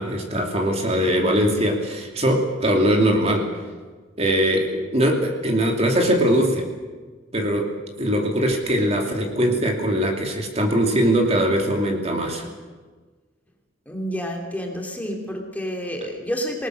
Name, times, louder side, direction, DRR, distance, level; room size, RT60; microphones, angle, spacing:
voice 1, 0.0-3.5 4.2-6.7 7.3-7.7 8.0-12.4, equal, 35° right, 2 dB, 2.7 m, -21 dB
voice 2, 13.9-16.7, equal, 10° left, 1 dB, 3.0 m, -29 dB
27.0 x 19.0 x 6.4 m, 1.4 s
head